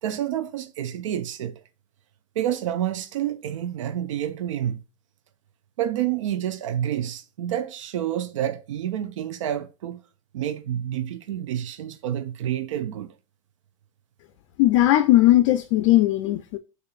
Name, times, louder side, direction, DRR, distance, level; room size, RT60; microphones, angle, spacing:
voice 1, 0.0-1.6 2.4-4.8 5.8-10.0 10.3-13.1, right 11 dB, 90° right, 0.6 m, -28 dB
voice 2, 14.6-16.6, left 15 dB, 65° left, 0.5 m, -18 dB
6.7 x 2.6 x 2.4 m
supercardioid pair, 110°, 16 cm